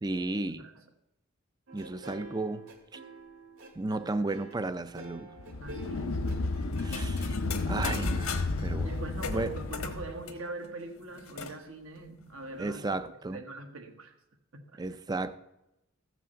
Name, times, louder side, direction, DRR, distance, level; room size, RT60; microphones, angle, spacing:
voice 1, 0.0-0.6 1.7-2.6 2.9-3.0 3.8-5.3 6.8-8.9 9.3-9.5 12.6-13.4 14.8-15.3, right 2 dB, 20° right, 0.5 m, -34 dB
sound 1, 1.7-7.4, right 3 dB, 90° right, 2.3 m, -48 dB
sound 2, 5.4-10.2, left 2 dB, 65° left, 0.6 m, -32 dB
voice 2, 5.6-6.2 8.8-12.9 13.3-14.2 14.5-14.8, right 2 dB, 70° right, 1.5 m, -42 dB
sound 3, 6.7-8.7 9.2-11.6 12.0-12.1 12.3-12.9, left 5 dB, 85° left, 1.3 m, -40 dB
15.0 x 6.1 x 7.1 m
head